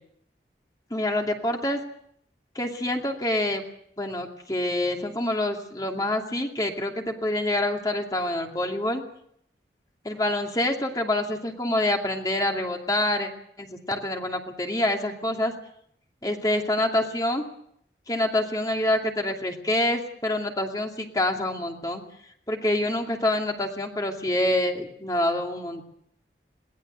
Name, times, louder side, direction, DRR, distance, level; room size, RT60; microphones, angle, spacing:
voice 1, 0.9-1.8 2.5-3.6 4.0-9.0 10.0-13.3 13.6-15.5 16.2-17.4 18.1-22.0 22.5-25.9, left 1 dB, 20° left, 2 dB, 2.6 m, -26 dB
22.5 x 19.0 x 8.0 m, 0.68 s
head